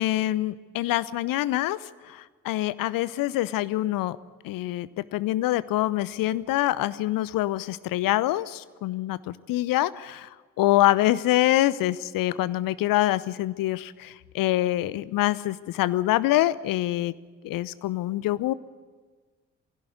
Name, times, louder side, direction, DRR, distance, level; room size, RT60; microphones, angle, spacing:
voice 1, 0.0-1.8 2.1-4.2 4.4-10.3 10.6-17.1 17.4-18.5, left 15 dB, 55° left, 18 dB, 0.8 m, -25 dB
21.5 x 16.5 x 9.4 m, 1.4 s
figure-of-eight pair, 40°, 39 cm